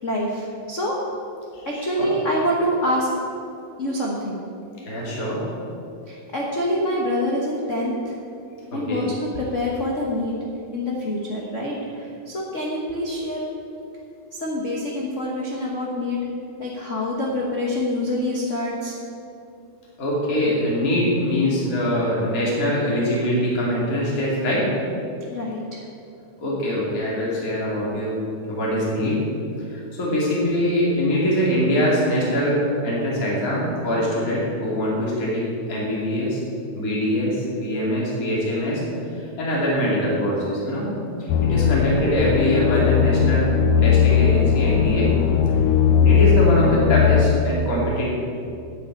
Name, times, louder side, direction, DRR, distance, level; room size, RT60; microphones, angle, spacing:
voice 1, 0.0-1.0 1.7-3.1 3.8-4.4 6.1-8.2 8.7-10.3 10.7-13.4 14.4-16.2 16.6-18.9 25.3-25.8, left 1 dB, 50° left, -3 dB, 0.9 m, -26 dB
voice 2, 1.5-2.1 4.9-5.4 8.7-9.0 20.0-24.6 26.4-28.2 28.5-29.2 29.7-36.4 36.8-38.8 39.4-40.9 41.2-43.4 43.8-45.1 46.0-48.1, equal, 30° left, -6 dB, 3.0 m, -23 dB
sound 1, 41.3-47.2, left 8 dB, 80° left, 2.1 m, -18 dB
9.8 x 7.7 x 8.5 m, 2.6 s
omnidirectional pair, 3.5 m